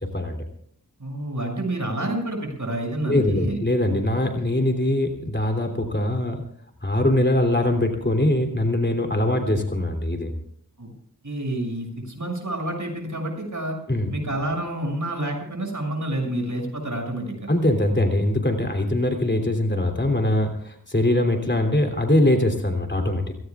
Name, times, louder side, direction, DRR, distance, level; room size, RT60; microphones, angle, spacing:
voice 1, 1.0-3.6 10.8-10.9 11.2-13.8 14.1-17.5, right 1 dB, 60° right, 1 dB, 6.6 m, -28 dB
voice 2, 3.0-6.4 6.8-10.3 13.9-14.1 17.5-23.2, left 1 dB, 30° left, 3 dB, 3.1 m, -22 dB
28.5 x 17.5 x 2.4 m, 0.67 s
wide cardioid pair, 45°, 34 cm